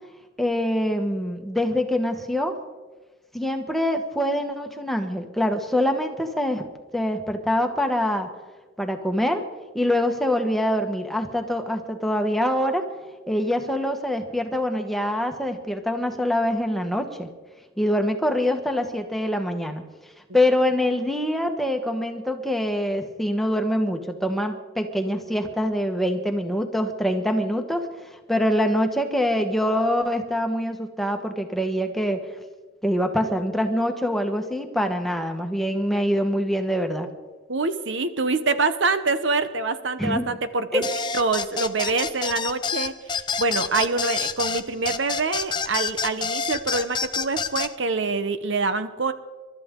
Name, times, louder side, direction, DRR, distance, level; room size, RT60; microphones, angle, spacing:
voice 1, 0.4-2.6 3.3-6.6 6.9-8.3 8.8-9.4 9.7-12.9 13.3-17.3 17.8-19.8 20.3-32.3 32.8-37.1 40.0-40.4 40.7-40.9, left 1 dB, ahead, 4 dB, 1.4 m, -24 dB
voice 2, 37.5-40.8 41.1-42.9 43.4-49.1, right 3 dB, 65° right, 10 dB, 1.0 m, -25 dB
sound 1, 40.8-47.7, left 5 dB, 25° left, 0.6 m, -28 dB
28.5 x 13.0 x 3.8 m, 1.3 s
head